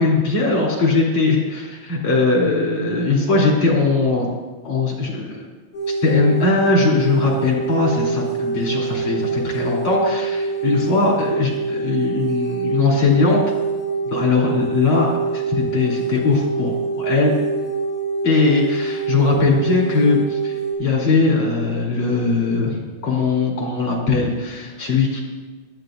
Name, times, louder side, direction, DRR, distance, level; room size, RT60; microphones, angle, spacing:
voice 1, 0.0-4.3 4.6-5.4 6.0-13.4 14.0-17.3 18.2-20.5 20.8-25.2, left 3 dB, 80° left, -3 dB, 4.3 m, -20 dB
sound 1, 5.7-20.7, right 4 dB, 30° left, 4.9 m, -25 dB
19.0 x 12.5 x 2.6 m, 1.2 s
omnidirectional pair, 2.2 m